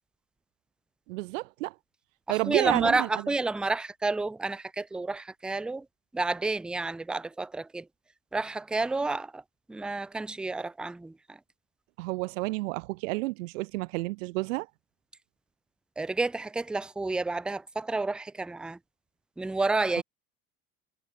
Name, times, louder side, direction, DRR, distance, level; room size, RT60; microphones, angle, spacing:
voice 1, 1.1-1.7 2.3-3.2 12.0-14.7 20.0-20.1, right 23 dB, 65° right, 0.9 m, -30 dB
voice 2, 2.3-5.9 6.1-7.9 8.3-9.4 9.7-11.4 16.0-18.8 19.4-20.0, right 3 dB, ahead, 0.4 m, -30 dB
figure-of-eight pair, 65°, 42 cm